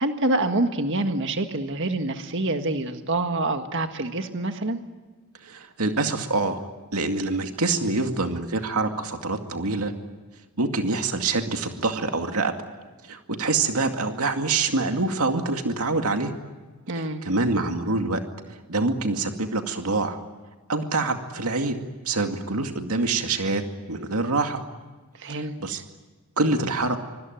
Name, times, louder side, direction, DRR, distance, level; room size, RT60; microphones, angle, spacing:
voice 1, 0.0-4.8 16.9-17.2 25.2-25.8, right 2 dB, 55° right, 6 dB, 1.7 m, -26 dB
voice 2, 5.4-6.6 6.9-9.9 10.6-12.5 13.0-16.3 16.9-18.2 18.7-20.2 20.7-23.6 23.9-24.6 25.2-25.8 26.4-27.0, right 3 dB, 80° right, 5 dB, 2.3 m, -25 dB
25.5 x 24.5 x 9.2 m, 1.3 s
head